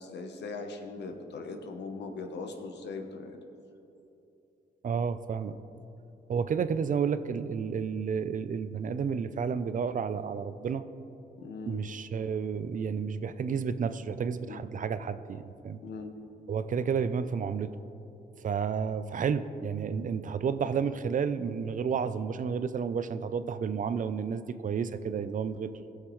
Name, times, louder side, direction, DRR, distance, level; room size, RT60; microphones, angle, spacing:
voice 1, 0.0-3.4 11.4-11.8 14.4-14.6 15.8-16.1, left 3 dB, 80° left, 5 dB, 1.0 m, -40 dB
voice 2, 4.8-5.6 6.3-10.8 11.7-15.8 16.5-17.7 18.4-25.9, right 6 dB, 50° right, 12 dB, 0.5 m, -31 dB
17.5 x 6.5 x 3.1 m, 2.8 s
cardioid pair, 85°, 18 cm